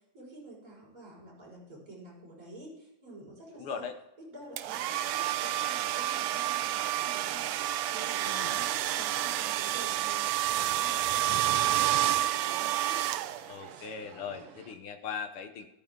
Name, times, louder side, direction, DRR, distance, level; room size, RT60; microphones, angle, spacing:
voice 1, 0.1-3.8 4.3-7.5 7.9-13.0, right 2 dB, 25° right, -4 dB, 5.9 m, -49 dB
voice 2, 3.5-4.0 8.3-8.7 13.5-15.7, left 6 dB, 65° left, 7 dB, 1.5 m, -39 dB
sound 1, 4.6-14.8, right 8 dB, 60° right, 1.6 m, -53 dB
sound 2, 4.6-13.7, right 13 dB, 75° right, 1.7 m, -29 dB
13.5 x 12.5 x 3.8 m, 0.86 s
omnidirectional pair, 3.3 m